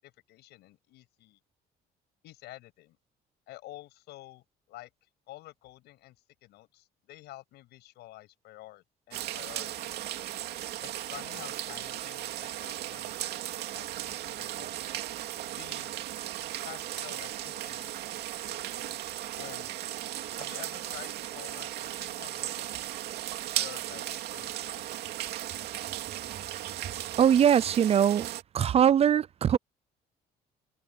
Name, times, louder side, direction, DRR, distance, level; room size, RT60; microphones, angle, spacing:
voice 1, 0.0-1.4 2.2-3.0 3.5-6.2 6.4-9.9 10.8-14.8 15.5-15.9 16.6-18.2 19.3-19.7 20.4-22.7 23.5-25.0, left 17 dB, 85° left, 6.8 m, -49 dB
sound 1, 9.1-28.4, right 13 dB, 75° right, 2.5 m, -36 dB
voice 2, 27.2-28.3 28.5-29.6, right 9 dB, 40° right, 0.4 m, -22 dB
cardioid pair, 110°, 17 cm